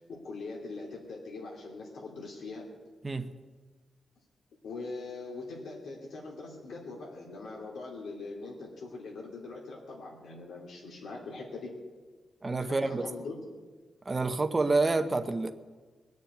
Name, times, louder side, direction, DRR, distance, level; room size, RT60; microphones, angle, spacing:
voice 1, 0.1-2.7 4.6-11.8 12.6-13.4, left 3 dB, 80° left, -2 dB, 2.8 m, -42 dB
voice 2, 12.4-13.0 14.1-15.5, right 3 dB, 20° right, 8 dB, 0.7 m, -28 dB
20.5 x 7.2 x 9.3 m, 1.4 s
wide cardioid pair, 155°, 0 cm